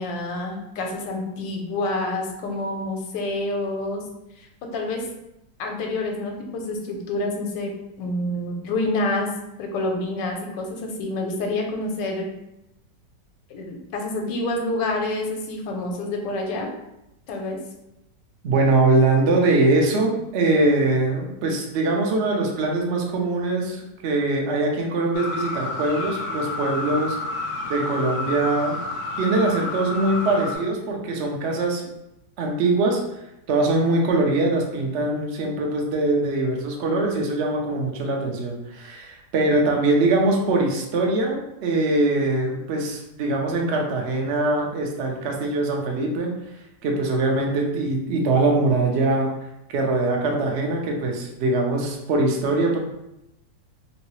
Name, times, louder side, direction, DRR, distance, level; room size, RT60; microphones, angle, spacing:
voice 1, 0.0-4.0 4.7-5.0 5.6-9.3 9.6-12.3 13.5-16.7 17.3-17.6, left 2 dB, 90° left, 2 dB, 1.3 m, -28 dB
voice 2, 18.4-27.2 27.7-28.8 29.2-31.8 32.4-33.0 33.5-46.3 46.8-49.3 49.7-52.8, right 2 dB, 70° right, 0 dB, 0.6 m, -22 dB
sound 1, 25.1-30.6, left 2 dB, 65° left, 0.7 m, -30 dB
3.1 x 2.8 x 3.0 m, 0.87 s
omnidirectional pair, 1.9 m